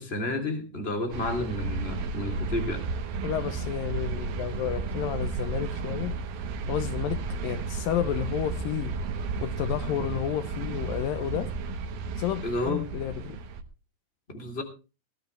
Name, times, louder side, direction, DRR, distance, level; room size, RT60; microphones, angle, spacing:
voice 1, 0.0-2.8 12.4-12.8 14.3-14.6, left 2 dB, 15° left, 3.0 m, -31 dB
sound 1, 1.1-13.6, right 4 dB, 85° right, 3.2 m, -33 dB
voice 2, 3.2-6.2 6.7-8.9 9.4-11.5 12.2-13.4, left 11 dB, 80° left, 2.5 m, -31 dB
20.0 x 12.0 x 3.3 m
omnidirectional pair, 4.1 m